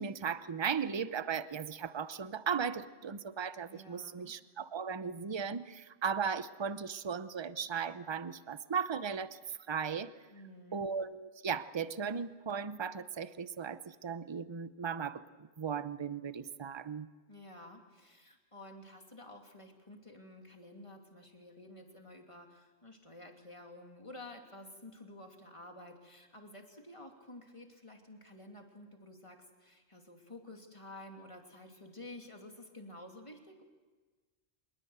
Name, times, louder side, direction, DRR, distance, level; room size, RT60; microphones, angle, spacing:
voice 1, 0.0-10.1 10.7-17.1, right 6 dB, 30° right, 14 dB, 0.7 m, -37 dB
voice 2, 3.7-4.3 10.3-10.9 17.3-33.6, left 1 dB, 25° left, 3 dB, 2.9 m, -51 dB
25.0 x 21.0 x 8.0 m, 1.3 s
omnidirectional pair, 1.2 m